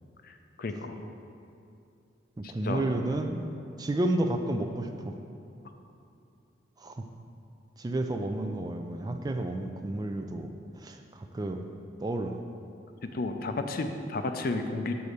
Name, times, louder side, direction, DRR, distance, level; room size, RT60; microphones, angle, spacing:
voice 1, 0.6-0.9 2.6-2.8 13.0-14.9, left 3 dB, 50° left, 6 dB, 0.5 m, -32 dB
voice 2, 2.4-3.4 3.8-5.1 6.8-7.0 7.8-10.5 10.8-11.7 12.0-12.4, right 1 dB, 20° right, 5 dB, 0.3 m, -31 dB
6.9 x 4.1 x 6.4 m, 2.7 s
head